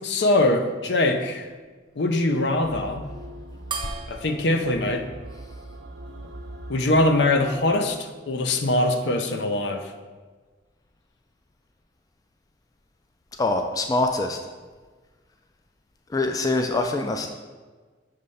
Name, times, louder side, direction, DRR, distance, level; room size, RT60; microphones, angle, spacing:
voice 1, 0.0-1.5 2.0-3.1 4.1-5.1 6.7-9.9, left 2 dB, 70° left, 6 dB, 0.6 m, -22 dB
sound 1, 2.6-8.0, right 1 dB, 70° right, 0.6 m, -42 dB
sound 2, 3.7-6.5, right 5 dB, 25° right, 0.6 m, -39 dB
voice 2, 13.4-14.4 16.1-17.3, left 2 dB, 20° left, 5 dB, 0.3 m, -24 dB
6.7 x 3.2 x 5.4 m, 1.4 s
head